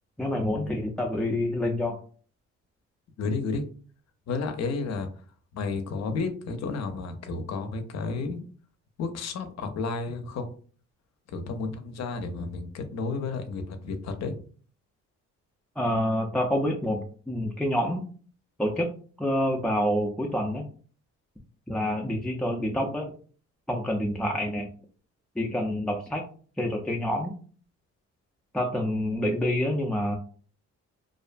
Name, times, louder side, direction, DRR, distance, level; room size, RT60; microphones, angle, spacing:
voice 1, 0.2-2.0 15.8-18.0 18.6-18.9 19.2-20.6 21.7-23.1 23.7-24.7 25.4-26.2 26.6-27.3 28.5-30.2, left 1 dB, 5° left, -1 dB, 0.3 m, -27 dB
voice 2, 3.2-3.7 4.3-5.1 5.5-8.4 9.0-10.5 11.3-14.4, left 4 dB, 60° left, 8 dB, 0.5 m, -32 dB
2.5 x 2.1 x 2.4 m, 0.42 s
cardioid pair, 90°, 30 cm